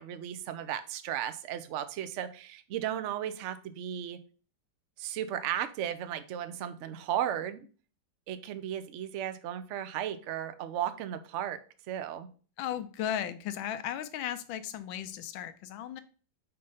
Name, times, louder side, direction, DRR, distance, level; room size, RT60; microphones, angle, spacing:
voice 1, 0.0-4.2 5.0-7.7 8.3-11.6 11.9-12.3, right 10 dB, 75° right, 11 dB, 0.6 m, -35 dB
voice 2, 12.6-16.0, left 10 dB, 90° left, 12 dB, 1.4 m, -36 dB
5.1 x 4.3 x 5.5 m, 0.39 s
omnidirectional pair, 2.1 m